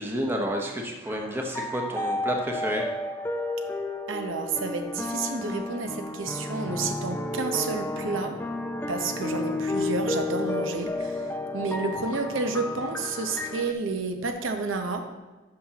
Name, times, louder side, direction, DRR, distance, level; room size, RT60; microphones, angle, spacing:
voice 1, 0.0-2.9, equal, 10° right, 1 dB, 0.9 m, -30 dB
sound 1, 1.1-13.7, left 2 dB, 10° left, 0.4 m, -32 dB
voice 2, 4.1-8.4 8.9-15.1, right 4 dB, 85° right, 6 dB, 0.8 m, -30 dB
11.5 x 5.8 x 2.9 m, 1.2 s
head